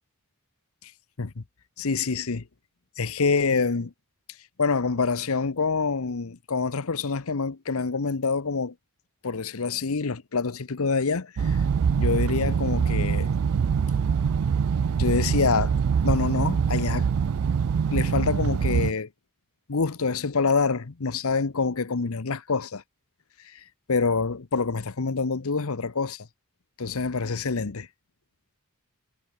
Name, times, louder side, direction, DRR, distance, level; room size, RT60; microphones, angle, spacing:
voice 1, 1.8-2.5 3.0-3.9 4.6-8.7 9.2-11.6 12.0-13.3 15.0-17.1 17.9-19.1 19.7-22.8 23.4-23.6 23.9-26.3 26.8-27.9, left 4 dB, 70° left, 0.9 m, -26 dB
sound 1, 11.4-18.9, right 6 dB, 70° right, 0.4 m, -24 dB
head